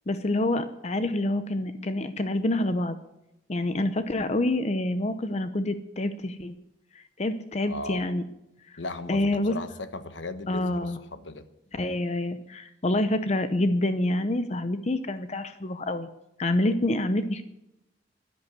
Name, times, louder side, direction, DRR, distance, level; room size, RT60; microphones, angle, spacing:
voice 1, 0.1-3.0 3.5-6.5 6.9-8.3 9.1-9.5 10.5-11.0 11.7-16.1 16.4-17.4, left 1 dB, 35° left, 10 dB, 0.8 m, -27 dB
voice 2, 7.7-8.1 8.8-11.4, left 2 dB, 85° left, 11 dB, 1.2 m, -37 dB
11.0 x 11.0 x 8.1 m, 0.85 s
head